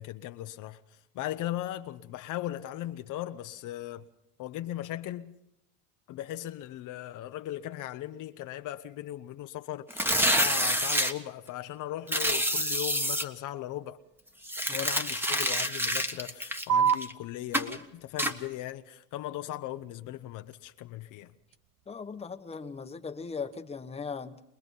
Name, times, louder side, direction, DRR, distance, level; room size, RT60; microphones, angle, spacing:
voice 1, 0.0-4.1 4.4-5.3 6.1-14.0 14.7-21.3, left 13 dB, 55° left, 0.9 m, -38 dB
sound 1, 9.9-11.1 12.1-13.2 14.4-17.1 17.5-17.8 18.2-18.3, equal, 5° right, 1.4 m, -27 dB
sound 2, 16.7-23.7, right 7 dB, 65° right, 0.9 m, -35 dB
voice 2, 21.9-24.5, left 5 dB, 15° left, 1.1 m, -39 dB
23.5 x 20.5 x 5.5 m
supercardioid pair, 95°, 36 cm